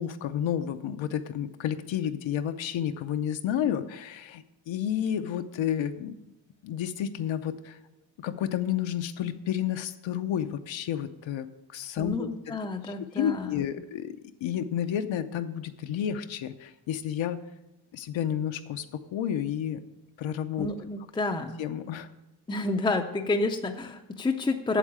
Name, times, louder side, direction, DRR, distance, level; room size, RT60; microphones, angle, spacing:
voice 1, 0.0-6.2 6.6-7.8 8.2-12.6 12.8-14.2 14.4-17.4 17.9-19.8 20.2-20.7 21.6-22.1, left 10 dB, 80° left, 8 dB, 0.8 m, -31 dB
voice 2, 12.0-13.6 20.6-21.6 22.5-24.8, left 2 dB, 10° left, 4 dB, 0.4 m, -29 dB
8.5 x 7.4 x 8.6 m, 0.95 s
wide cardioid pair, 170°, 45 cm